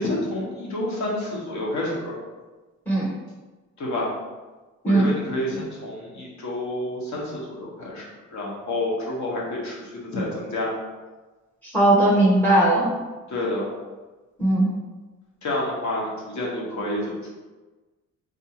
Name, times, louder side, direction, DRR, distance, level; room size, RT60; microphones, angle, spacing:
voice 1, 0.0-2.2 3.8-4.1 4.8-10.7 13.3-13.7 15.4-17.3, left 1 dB, 60° left, -4 dB, 1.1 m, -29 dB
voice 2, 11.6-12.9 14.4-14.7, right 1 dB, 5° left, -4 dB, 0.7 m, -18 dB
3.6 x 2.7 x 2.8 m, 1.2 s
cardioid pair, 115°, 32 cm